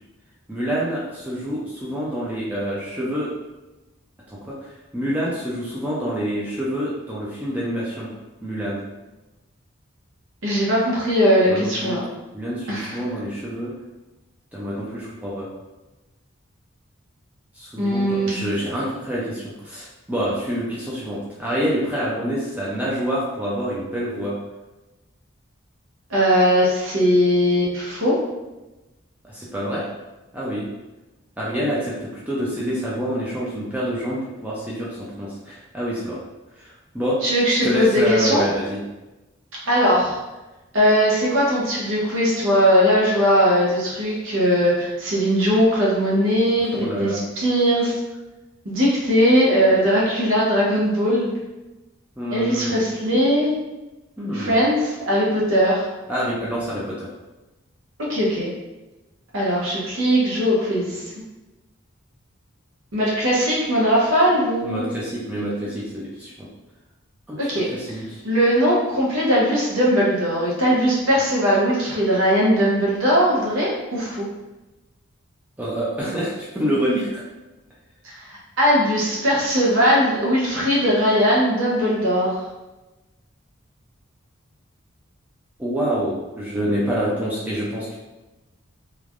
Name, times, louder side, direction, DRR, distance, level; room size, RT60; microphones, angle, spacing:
voice 1, 0.5-3.3 4.3-8.1 8.4-8.8 11.5-12.0 12.3-13.7 14.5-15.5 17.6-24.4 29.2-29.8 30.3-30.7 31.4-36.2 36.6-37.2 37.6-38.8 46.7-47.2 52.2-52.7 54.2-54.6 56.1-57.1 64.6-66.5 67.3-68.2 75.6-77.2 85.6-88.0, equal, 5° right, -7 dB, 0.4 m, -27 dB
voice 2, 10.4-12.0 12.7-13.0 17.8-18.4 26.1-28.2 37.2-38.4 39.6-40.2 40.7-47.9 48.6-51.3 52.3-53.5 54.3-55.9 58.1-58.5 59.3-61.0 62.9-64.8 67.4-67.7 68.2-74.3 78.0-82.5, equal, 70° right, -5 dB, 0.8 m, -19 dB
3.2 x 2.2 x 2.4 m, 1.1 s
head